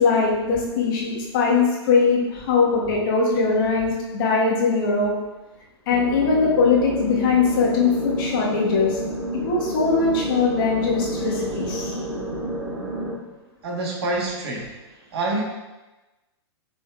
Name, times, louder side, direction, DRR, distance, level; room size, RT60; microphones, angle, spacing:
voice 1, 0.0-5.1 5.9-9.0 9.4-11.9, left 4 dB, 50° left, -3 dB, 1.2 m, -21 dB
sound 1, 5.9-13.1, right 1 dB, 25° right, 1.2 m, -29 dB
voice 2, 11.4-12.0 13.6-14.8 15.1-15.4, right 2 dB, 65° right, -1 dB, 1.1 m, -28 dB
5.6 x 3.3 x 2.3 m, 1.1 s
hypercardioid pair, 115°, 14 cm